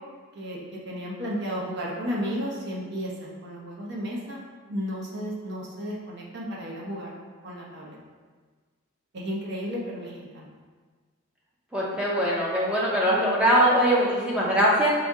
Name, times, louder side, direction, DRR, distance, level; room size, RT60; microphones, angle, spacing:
voice 1, 0.3-4.4 4.7-7.2 7.4-8.0 9.1-10.5, equal, 55° right, -4 dB, 0.9 m, -33 dB
voice 2, 11.7-14.9, equal, 5° right, -6 dB, 0.6 m, -22 dB
5.2 x 2.7 x 3.6 m, 1.5 s
head